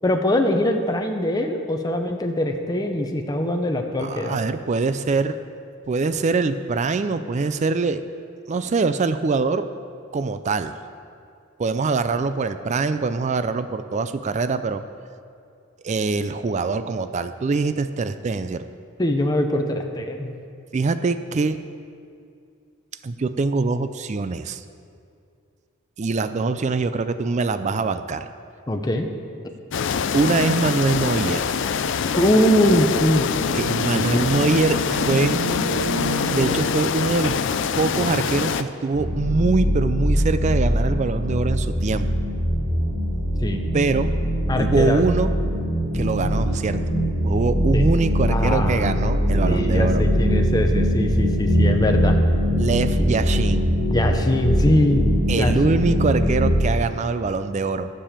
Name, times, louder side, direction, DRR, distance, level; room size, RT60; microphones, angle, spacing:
voice 1, 0.0-4.4 19.0-20.3 28.7-29.1 32.1-33.3 33.7-34.0 43.4-43.6 44.5-45.0 47.7-47.8 48.3-48.9 49.4-52.2 53.9-55.8, left 1 dB, 20° left, 4 dB, 0.7 m, -22 dB
voice 2, 4.0-5.4 5.9-8.0 8.5-9.7 10.1-10.8 11.6-14.8 15.8-18.6 20.7-21.6 23.0-24.6 26.0-28.3 30.1-31.5 33.6-35.4 36.3-37.4 37.8-42.1 43.7-44.1 44.5-45.3 45.9-46.8 47.2-50.0 52.5-53.7 55.3-57.9, right 3 dB, 35° right, 11 dB, 0.3 m, -23 dB
sound 1, 29.7-38.6, left 6 dB, 60° left, 0.4 m, -24 dB
sound 2, 31.8-36.6, right 1 dB, 75° right, 1.3 m, -31 dB
sound 3, 38.9-56.6, equal, 90° right, 2.6 m, -22 dB
9.9 x 6.9 x 7.4 m, 2.4 s
head